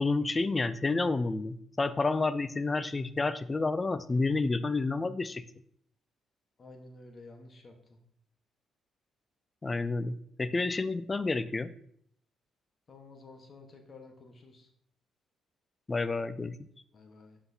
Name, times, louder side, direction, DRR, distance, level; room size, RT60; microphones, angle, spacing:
voice 1, 0.0-5.4 9.6-11.7 15.9-16.5, left 3 dB, 25° left, 14 dB, 0.4 m, -30 dB
voice 2, 6.6-7.7 12.9-14.7 16.9-17.4, left 3 dB, 40° left, 4 dB, 1.2 m, -51 dB
7.8 x 5.7 x 2.8 m, 0.66 s
cardioid pair, 90°, 0 cm